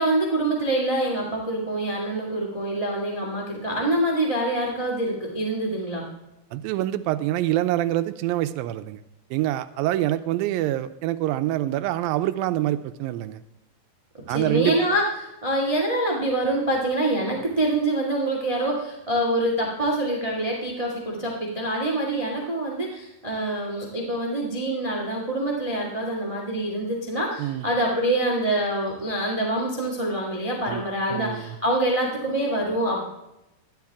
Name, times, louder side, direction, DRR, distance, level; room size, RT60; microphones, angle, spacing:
voice 1, 0.0-6.0 14.3-33.0, right 1 dB, 15° right, -1 dB, 1.2 m, -25 dB
voice 2, 6.5-9.0 9.3-13.4 14.3-14.7 27.4-27.7 30.7-30.8 31.1-31.6, right 14 dB, 85° right, 11 dB, 2.3 m, -25 dB
12.0 x 10.5 x 3.6 m, 0.90 s
omnidirectional pair, 4.2 m